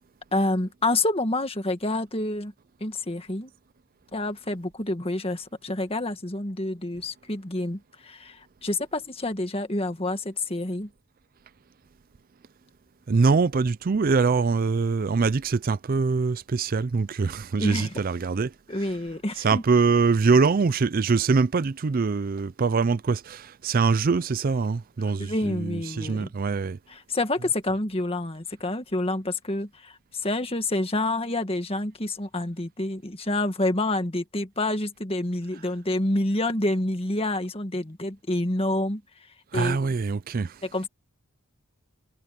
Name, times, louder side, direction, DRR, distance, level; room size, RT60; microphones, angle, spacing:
voice 1, 0.3-2.5 2.8-3.5 4.1-10.9 17.6-18.0 18.7-19.6 25.2-26.3 26.9-39.0 39.5-39.9 40.6-40.9, left 2 dB, 25° left, 1.8 m, -28 dB
voice 2, 13.1-18.5 19.4-26.8 39.5-40.6, right 4 dB, 40° right, 0.4 m, -23 dB
head